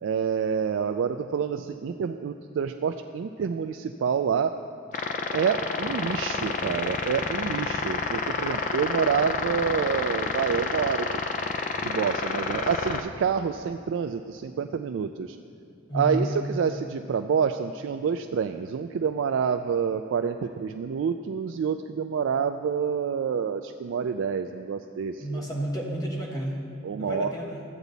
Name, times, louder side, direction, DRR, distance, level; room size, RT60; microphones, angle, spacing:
voice 1, 0.0-4.5 5.3-11.2 11.8-15.4 15.9-25.5 26.8-27.3, right 6 dB, 75° right, 7 dB, 0.3 m, -28 dB
sound 1, 4.9-13.0, left 4 dB, 40° left, 0.4 m, -29 dB
voice 2, 15.9-16.3 25.2-26.6 27.0-27.6, equal, 20° left, -2 dB, 1.3 m, -31 dB
13.0 x 8.2 x 4.0 m, 2.5 s
head